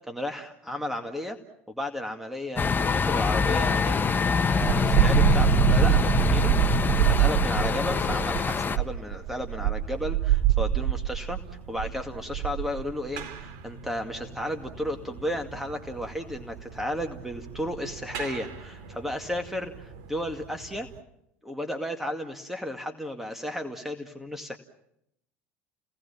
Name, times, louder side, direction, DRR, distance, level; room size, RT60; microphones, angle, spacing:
voice 1, 0.1-1.4 1.7-4.1 4.5-6.5 6.8-11.4 11.7-20.9 21.4-24.6, left 1 dB, 5° right, 5 dB, 2.2 m, -33 dB
sound 1, 2.6-8.8, left 5 dB, 25° left, 1.3 m, -25 dB
sound 2, 4.6-21.0, right 12 dB, 65° right, 2.4 m, -27 dB
30.0 x 19.0 x 7.3 m, 0.79 s
hypercardioid pair, 70°, 7 cm